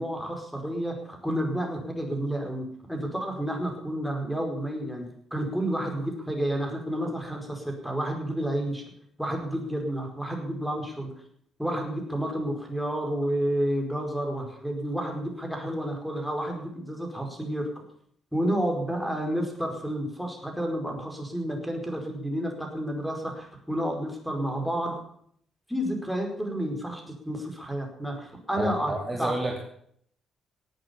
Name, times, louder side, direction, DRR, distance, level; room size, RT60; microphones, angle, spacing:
voice 1, 0.0-8.8 9.2-11.1 11.6-17.7 18.3-25.0 25.7-28.9 29.2-29.4, right 1 dB, ahead, 3 dB, 4.9 m, -30 dB
voice 2, 28.5-29.6, right 2 dB, 20° right, 0 dB, 2.7 m, -30 dB
18.5 x 8.9 x 7.1 m, 0.64 s
cardioid pair, 90°, 0 cm